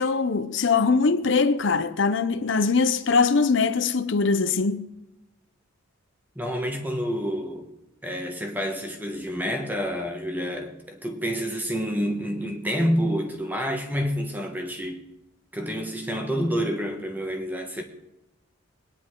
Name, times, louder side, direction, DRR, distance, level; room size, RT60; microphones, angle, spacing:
voice 1, 0.0-4.9, left 4 dB, 55° left, 0.6 m, -22 dB
voice 2, 6.3-7.7 8.0-15.1 15.5-17.8, equal, 10° right, 1.2 m, -28 dB
22.0 x 10.0 x 3.7 m
head